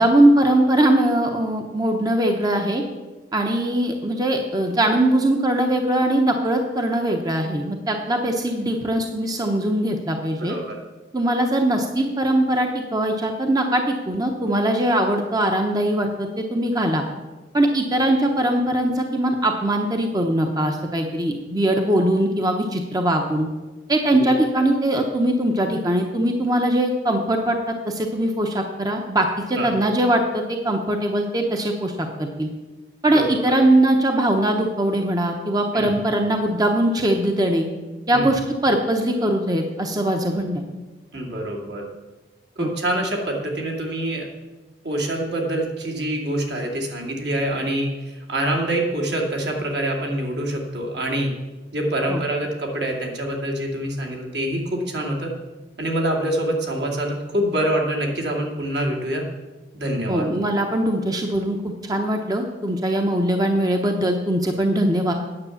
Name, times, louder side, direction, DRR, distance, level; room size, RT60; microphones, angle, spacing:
voice 1, 0.0-2.8 3.3-10.5 11.1-17.0 17.5-23.5 23.9-32.5 33.0-37.7 38.1-40.6 42.6-42.7 52.1-52.2 60.1-65.1, right 1 dB, 20° right, 3 dB, 0.8 m, -21 dB
voice 2, 10.5-10.8 29.5-29.7 33.1-33.6 35.7-35.9 38.1-38.3 41.1-41.9 42.6-44.3 44.8-51.3 51.7-55.3 55.8-59.2 59.7-60.3, right 1 dB, 70° right, 0 dB, 2.4 m, -25 dB
9.7 x 7.8 x 7.0 m, 1.2 s
head